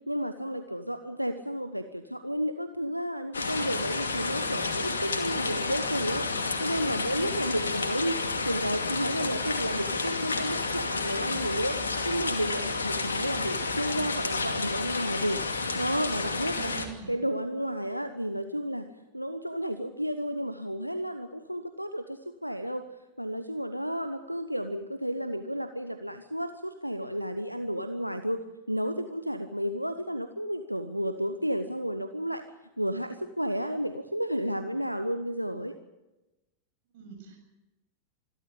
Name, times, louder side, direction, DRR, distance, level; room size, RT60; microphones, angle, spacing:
voice 1, 0.1-11.8 12.0-16.7 17.1-18.9 19.1-22.8 23.2-32.4 32.8-35.8, equal, 90° right, 8 dB, 1.0 m, -32 dB
sound 1, 3.3-16.9, left 3 dB, 70° left, 2.5 m, -30 dB
voice 2, 16.4-17.1 36.9-37.4, right 6 dB, 50° right, 3 dB, 7.4 m, -43 dB
26.0 x 12.5 x 8.7 m, 1.0 s
figure-of-eight pair, 90°, 0 cm